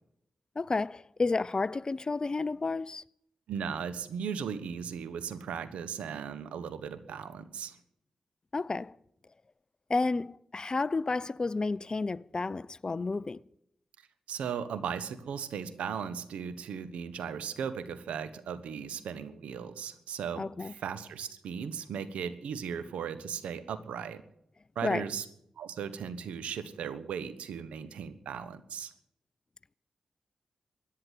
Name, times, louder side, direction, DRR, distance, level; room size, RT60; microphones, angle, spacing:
voice 1, 0.6-3.0 8.5-8.9 9.9-13.4 20.4-20.7 24.8-25.0, left 3 dB, 40° left, 0.5 m, -31 dB
voice 2, 3.5-7.8 14.3-24.2 24.7-25.2 25.6-28.9, right 7 dB, 90° right, 1.1 m, -37 dB
14.5 x 10.0 x 9.3 m
supercardioid pair, 45°, 2 cm